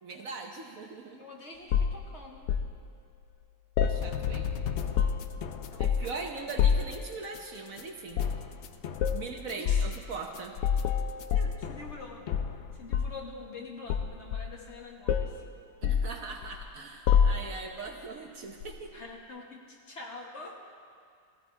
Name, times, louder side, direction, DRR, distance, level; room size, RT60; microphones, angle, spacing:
voice 1, 0.0-1.3 3.8-4.6 5.8-8.2 9.1-10.5 15.8-19.0, right 4 dB, 55° right, 3 dB, 1.2 m, -40 dB
voice 2, 1.2-2.4 5.7-6.2 9.7-9.9 11.3-12.2 12.8-15.4 18.9-20.6, left 3 dB, 40° left, 0 dB, 1.5 m, -45 dB
sound 1, 1.7-2.7 3.8-4.5 4.8-5.4 5.8-6.2 6.6-7.0 8.1-8.4 9.0-9.2 9.7-9.9 10.6-12.0 12.3-13.3 13.9-14.8 15.1-15.4 15.8-16.6 17.1-17.7 18.6-18.8, left 7 dB, 90° left, 1.4 m, -27 dB
sound 2, 4.0-13.2, left 8 dB, 70° left, 0.6 m, -39 dB
16.5 x 15.0 x 4.5 m, 2.2 s
omnidirectional pair, 1.9 m